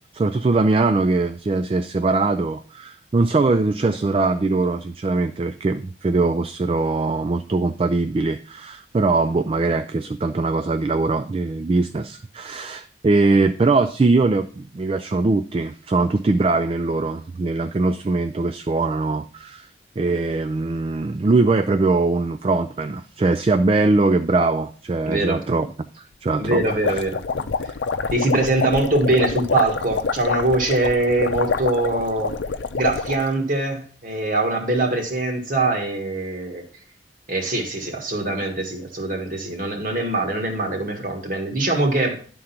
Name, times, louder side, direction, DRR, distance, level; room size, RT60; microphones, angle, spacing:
voice 1, 0.1-19.7 20.0-25.7 25.9-26.6, right 3 dB, 30° right, 9 dB, 0.3 m, -21 dB
voice 2, 25.1-25.7 26.4-27.7 28.1-32.3 32.7-36.6 37.3-42.2, right 2 dB, 45° right, 4 dB, 1.6 m, -23 dB
sound 1, 26.4-33.3, left 4 dB, 80° left, 0.6 m, -26 dB
11.0 x 3.8 x 5.7 m, 0.44 s
head